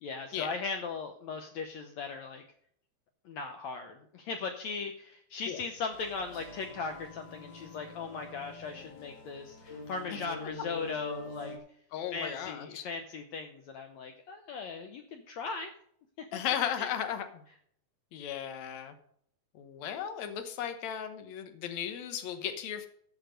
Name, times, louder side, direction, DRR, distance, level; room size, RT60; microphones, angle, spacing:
voice 1, 0.0-2.4 3.2-11.6 12.1-15.7 16.8-16.9, left 4 dB, 80° left, 5 dB, 1.6 m, -38 dB
sound 1, 5.9-11.6, left 2 dB, 45° left, 1.5 m, -46 dB
voice 2, 11.9-12.9 16.3-17.4 18.1-18.9 19.6-22.9, left 9 dB, 65° left, 8 dB, 1.9 m, -36 dB
15.0 x 6.0 x 5.1 m, 0.65 s
omnidirectional pair, 4.3 m